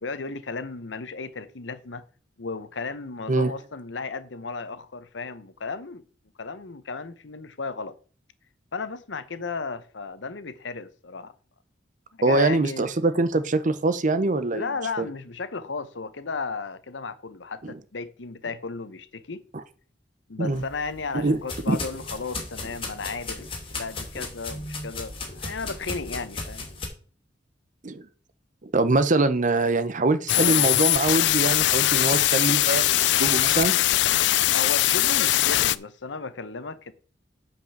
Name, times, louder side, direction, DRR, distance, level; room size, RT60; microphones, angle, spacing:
voice 1, 0.0-2.0 2.4-6.0 6.4-8.0 8.7-11.3 12.1-12.9 14.5-19.4 20.3-26.7 34.5-36.9, left 4 dB, 90° left, 0.9 m, -34 dB
voice 2, 12.2-14.6 15.0-15.1 17.6-17.7 20.4-20.6 21.1-21.4 21.7-21.8 27.8-28.0 28.6-33.7, right 2 dB, 45° right, 0.8 m, -23 dB
sound 1, 20.5-26.9, left 3 dB, 30° left, 2.7 m, -36 dB
sound 2, 30.3-35.8, left 15 dB, 70° left, 0.4 m, -21 dB
7.9 x 5.3 x 6.6 m
head